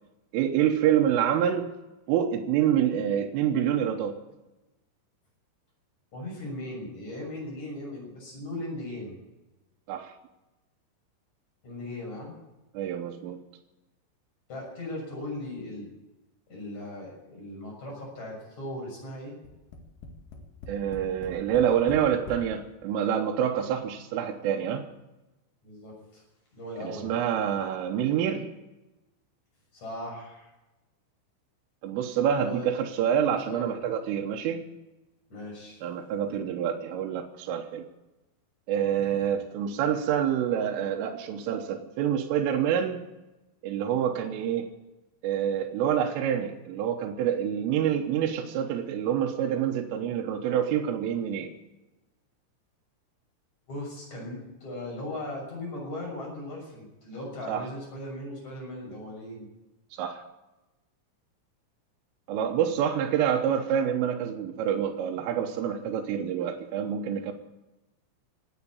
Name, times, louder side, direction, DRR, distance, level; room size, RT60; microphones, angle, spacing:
voice 1, 0.3-1.7 2.1-4.2 9.9-10.1 12.8-13.4 20.7-24.9 26.8-28.5 31.8-34.7 35.8-37.9 38.7-43.0 43.6-44.7 45.2-51.5 57.5-57.7 59.9-60.2 62.3-67.3, right 9 dB, 80° right, 1 dB, 3.5 m, -27 dB
voice 2, 6.1-9.2 11.6-12.3 14.5-15.9 16.5-19.4 25.6-26.2 26.5-27.1 29.7-30.5 32.4-32.7 33.2-33.7 35.3-35.8 39.0-39.1 53.7-59.5, left 1 dB, 35° left, -2 dB, 7.6 m, -38 dB
Tap, 19.4-22.5 23.3-23.4 23.7-23.8, left 2 dB, 70° left, 4.4 m, -42 dB
17.5 x 9.3 x 8.5 m, 1.0 s
omnidirectional pair, 5.9 m